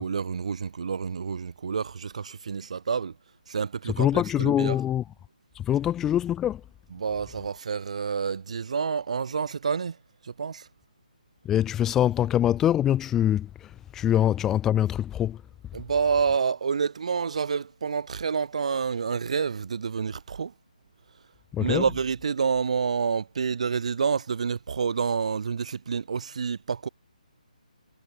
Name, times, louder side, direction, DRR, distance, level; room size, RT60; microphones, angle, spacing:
voice 1, 0.0-3.1 3.5-4.8 6.9-10.0 10.2-10.7 15.7-20.5 21.6-26.9, right 6 dB, 50° right, 6.2 m, -28 dB
voice 2, 3.9-5.0 5.5-6.6 11.4-15.4 21.5-21.8, left 11 dB, 10° left, 1.2 m, -24 dB
hypercardioid pair, 170°, 4 cm